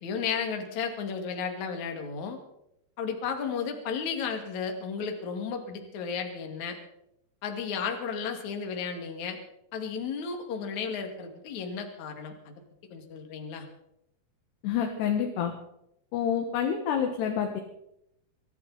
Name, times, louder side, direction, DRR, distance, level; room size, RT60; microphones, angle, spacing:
voice 1, 0.0-2.4 3.0-6.8 7.4-9.4 9.7-12.5 12.9-13.7, left 6 dB, 50° left, 4 dB, 3.2 m, -33 dB
voice 2, 14.6-15.5 16.1-17.6, left 8 dB, 80° left, 2 dB, 3.6 m, -28 dB
24.0 x 14.5 x 4.1 m, 0.79 s
omnidirectional pair, 4.8 m